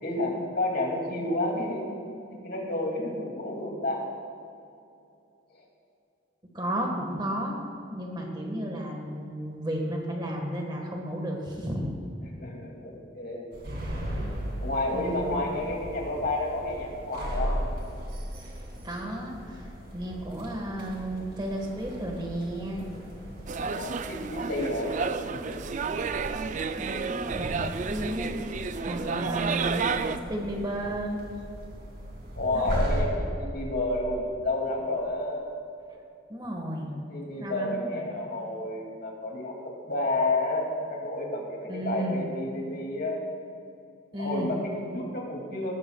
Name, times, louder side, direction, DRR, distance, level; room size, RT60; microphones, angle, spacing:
voice 1, 0.0-1.9 2.3-4.1 5.5-5.6 12.3-13.5 14.1-14.2 14.6-17.6 23.7-24.9 25.3-25.6 29.0-29.4 32.3-35.5 37.1-39.6 39.9-43.2 44.2-45.8, left 2 dB, 55° left, -1 dB, 2.5 m, -30 dB
voice 2, 6.5-7.6 7.9-11.8 14.9-15.3 18.8-22.8 26.8-28.4 28.8-29.9 30.3-31.2 32.5-32.7 36.3-36.9 37.4-38.0 41.7-42.2 44.1-44.6, right 1 dB, 25° right, 0 dB, 1.5 m, -33 dB
sound 1, 13.5-33.0, equal, 55° right, 2.6 m, -37 dB
sound 2, 23.5-30.2, right 5 dB, 40° right, 0.4 m, -31 dB
19.0 x 13.0 x 2.3 m, 2.6 s
head